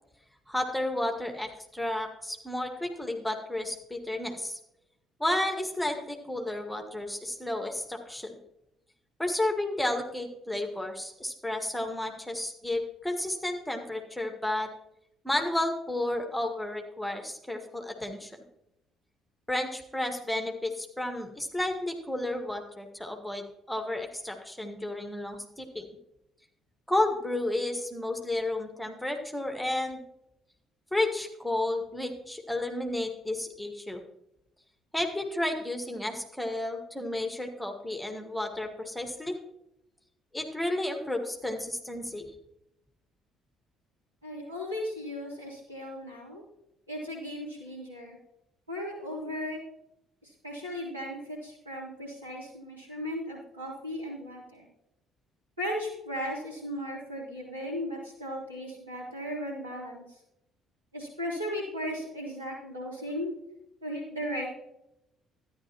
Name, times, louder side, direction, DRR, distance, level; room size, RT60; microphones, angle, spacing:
voice 1, 0.5-4.6 5.2-8.4 9.2-14.7 15.2-18.3 19.5-25.9 26.9-30.0 30.9-34.0 34.9-39.4 40.3-42.3, left 1 dB, 5° left, 4 dB, 1.8 m, -32 dB
voice 2, 44.2-46.4 46.9-48.2 48.7-49.6 50.2-54.7 55.6-60.2 60.9-63.3 63.8-64.5, equal, 85° right, -5 dB, 3.5 m, -36 dB
13.0 x 10.5 x 3.0 m, 0.83 s
figure-of-eight pair, 50°, 0 cm